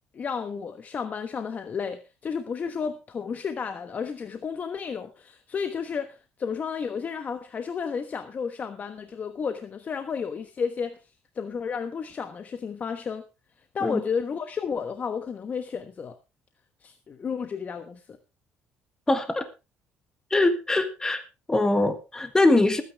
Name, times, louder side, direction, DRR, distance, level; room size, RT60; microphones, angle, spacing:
voice 1, 0.1-11.0 11.3-13.2 13.7-16.2 16.8-18.0, left 6 dB, 40° left, 1.1 m, -32 dB
voice 2, 19.1-19.5 20.3-21.2 21.5-22.8, left 2 dB, 15° left, 1.6 m, -22 dB
20.5 x 9.4 x 3.4 m
cardioid pair, 105°, 4 cm